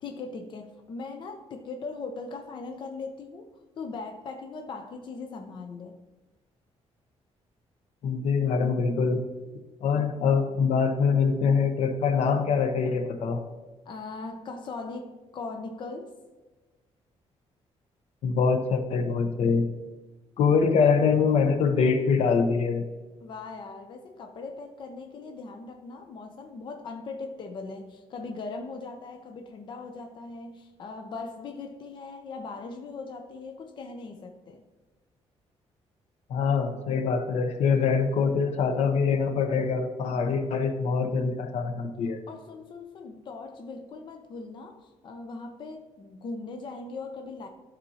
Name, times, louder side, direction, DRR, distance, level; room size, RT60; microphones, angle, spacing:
voice 1, 0.0-3.5 3.8-6.0 13.9-16.1 23.2-34.6 42.3-47.5, left 3 dB, 45° left, 4 dB, 0.6 m, -39 dB
voice 2, 8.0-9.2 9.8-13.4 18.2-19.7 20.4-22.8 36.3-42.2, left 5 dB, 75° left, 7 dB, 0.8 m, -24 dB
12.5 x 4.2 x 2.8 m, 1.2 s
cardioid pair, 165°, 11 cm